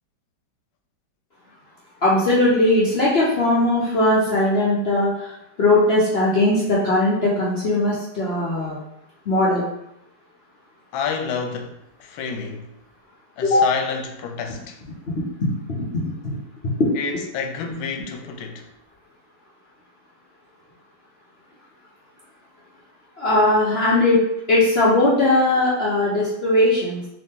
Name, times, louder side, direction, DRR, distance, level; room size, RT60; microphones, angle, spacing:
voice 1, 2.0-8.8 9.3-9.6 13.4-13.6 15.4-15.5 16.2-16.4 23.2-24.2 24.5-27.0, left 2 dB, 60° left, 0.6 m, -19 dB
voice 2, 10.9-12.7 13.4-14.8 17.0-18.7, left 6 dB, 85° left, 1.4 m, -29 dB
3.7 x 2.9 x 3.6 m
omnidirectional pair, 2.1 m